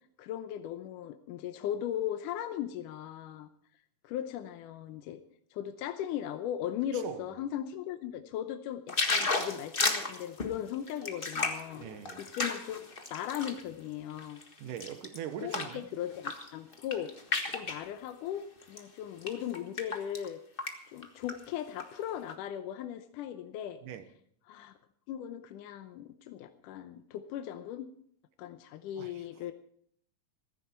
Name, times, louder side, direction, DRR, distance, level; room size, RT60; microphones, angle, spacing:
voice 1, 0.2-3.5 4.0-5.2 5.5-11.8 12.2-12.8 13.1-14.4 15.4-17.1 17.5-20.4 20.9-23.8 24.5-24.7 25.1-27.9 28.4-29.5, left 10 dB, 80° left, 2.3 m, -38 dB
voice 2, 6.9-7.2 11.7-12.2 14.6-15.9 23.8-24.0 29.0-29.1, right 10 dB, 75° right, 2.6 m, -41 dB
sound 1, 8.9-13.6 14.1-15.8 16.1-16.5 16.7-17.8 18.6-18.8 19.2-20.3 20.6-20.7 21.0-21.8 22.3-22.4, left 3 dB, 55° left, 0.5 m, -33 dB
15.0 x 14.5 x 4.4 m
omnidirectional pair, 3.9 m